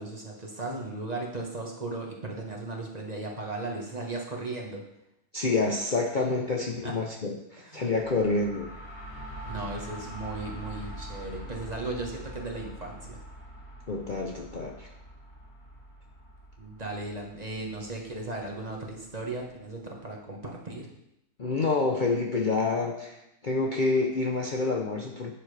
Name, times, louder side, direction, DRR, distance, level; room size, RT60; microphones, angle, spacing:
voice 1, 0.0-4.8 6.8-6.9 7.6-7.8 9.5-13.2 16.6-20.9, right 2 dB, 30° right, -1 dB, 1.4 m, -36 dB
voice 2, 5.3-8.7 13.9-14.9 21.4-25.3, left 3 dB, 40° left, 0 dB, 0.8 m, -28 dB
sound 1, 7.9-19.6, right 1 dB, 75° left, 3.0 m, -44 dB
11.0 x 7.4 x 3.4 m, 0.85 s
omnidirectional pair, 1.6 m